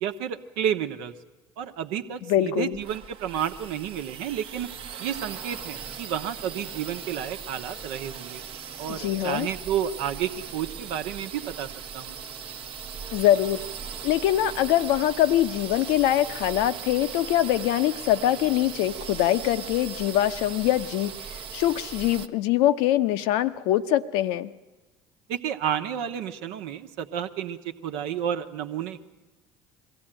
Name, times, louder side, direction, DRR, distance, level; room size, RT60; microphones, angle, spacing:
voice 1, 0.0-1.1 1.6-4.7 5.0-8.4 8.8-11.7 11.9-12.2 25.3-29.1, right 9 dB, 70° right, 6 dB, 1.1 m, -31 dB
voice 2, 2.3-2.8 8.9-9.5 13.1-13.6 14.0-24.5, left 12 dB, 70° left, 10 dB, 0.8 m, -23 dB
sound 1, 2.7-22.3, right 7 dB, 50° right, 1.0 m, -39 dB
22.0 x 15.5 x 8.9 m, 1.1 s
hypercardioid pair, 65°, 12 cm